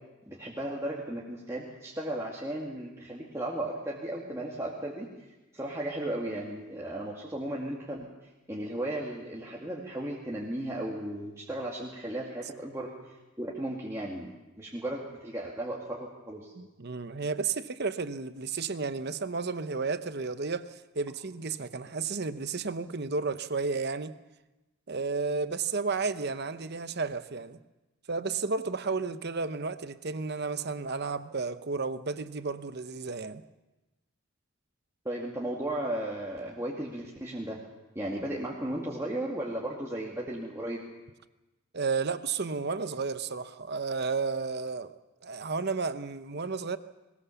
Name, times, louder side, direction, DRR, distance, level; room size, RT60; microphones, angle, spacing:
voice 1, 0.3-5.1 5.5-8.1 8.5-16.5 35.0-37.6 37.9-40.8, right 1 dB, 15° right, 2.2 m, -35 dB
voice 2, 16.6-24.1 24.9-27.6 28.1-33.4 41.7-44.9 45.2-46.8, right 4 dB, 50° right, 0.9 m, -32 dB
21.0 x 20.0 x 7.1 m
head